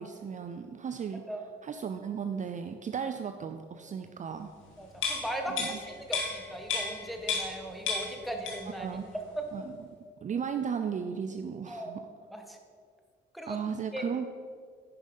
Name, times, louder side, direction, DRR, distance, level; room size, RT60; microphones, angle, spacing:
voice 1, 0.0-1.2 1.6-4.5 5.5-5.8 8.8-9.1 9.5-9.6 10.2-12.0 13.5-14.2, right 7 dB, 40° right, 7 dB, 0.5 m, -35 dB
voice 2, 4.8-8.9 9.4-9.5 11.7-12.0 12.3-12.6 13.3-13.6 13.9-14.0, right 1 dB, ahead, 3 dB, 1.4 m, -38 dB
sound 1, 5.0-7.6 7.9-8.8 9.1-9.3, left 5 dB, 75° left, 2.1 m, -33 dB
10.5 x 5.5 x 5.4 m, 2.1 s
cardioid pair, 90°, 20 cm